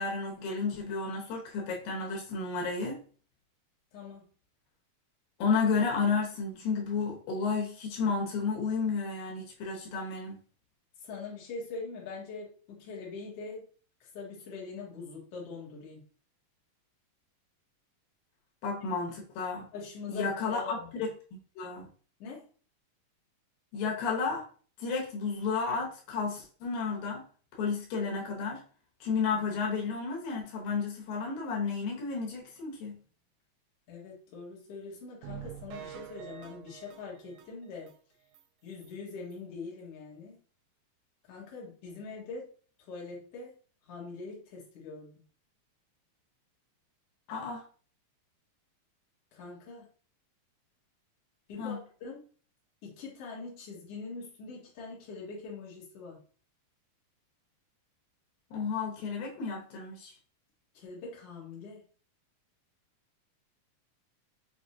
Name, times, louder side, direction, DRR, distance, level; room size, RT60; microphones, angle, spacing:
voice 1, 0.0-3.0 5.4-10.4 18.6-19.7 20.1-21.9 23.7-24.4 24.8-27.2 27.5-28.6 29.0-33.0 47.3-47.6 51.6-51.8 58.5-60.1, left 5 dB, 85° left, -1 dB, 2.8 m, -32 dB
voice 2, 3.9-4.2 11.0-13.7 14.0-16.0 19.7-21.1 22.2-22.5 33.9-37.9 38.6-40.4 41.3-42.5 42.8-43.5 43.9-45.1 49.3-49.9 51.5-52.2 52.8-56.2 60.7-61.8, left 4 dB, 55° left, -4 dB, 2.1 m, -43 dB
sound 1, 35.2-37.9 38.3-38.4 38.8-38.9 39.3-39.4, right 11 dB, 85° right, 2.2 m, -46 dB
6.4 x 2.6 x 2.7 m, 0.42 s
omnidirectional pair, 3.9 m